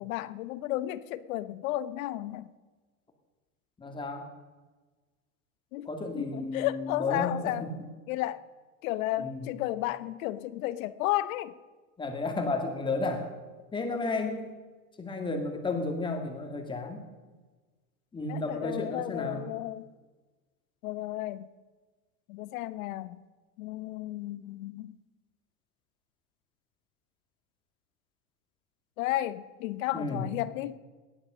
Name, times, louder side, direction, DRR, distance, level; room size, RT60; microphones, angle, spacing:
voice 1, 0.0-2.5 5.7-5.9 6.1-7.7 8.1-8.4 8.8-11.5 18.3-19.9 20.8-21.5 22.3-23.2 23.6-24.9 29.0-30.8, left 15 dB, 60° left, 15 dB, 1.0 m, -33 dB
voice 2, 3.8-4.3 5.9-7.7 9.2-9.4 12.0-13.3 13.7-14.5 15.0-17.1 18.1-19.4 29.9-30.2, left 3 dB, 10° left, 4 dB, 2.2 m, -32 dB
19.0 x 11.5 x 6.3 m, 1.3 s
supercardioid pair, 150°, 46 cm